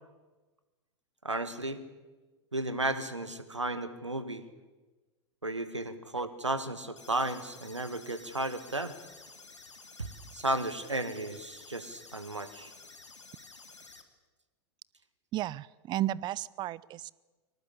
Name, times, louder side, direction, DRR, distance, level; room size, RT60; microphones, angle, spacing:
voice 1, 1.2-1.8 2.5-4.4 5.4-8.9 10.0-12.7, right 2 dB, 85° right, 11 dB, 1.9 m, -34 dB
sound 1, 7.0-14.0, left 3 dB, 85° left, 2.5 m, -52 dB
voice 2, 15.3-17.1, right 14 dB, 30° right, 23 dB, 0.6 m, -33 dB
23.5 x 18.5 x 8.5 m, 1.2 s
figure-of-eight pair, 95°, 15 cm